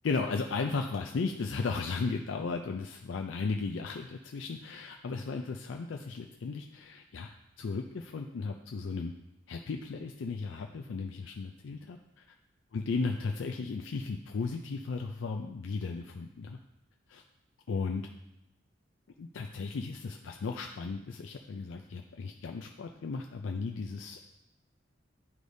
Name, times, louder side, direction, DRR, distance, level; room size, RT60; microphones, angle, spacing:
voice 1, 0.0-7.3 7.6-9.1 9.5-12.2 12.7-16.6 17.1-17.2 17.7-18.1 19.2-24.2, left 4 dB, 85° left, 3 dB, 0.4 m, -35 dB
11.0 x 4.9 x 2.7 m, 0.90 s
head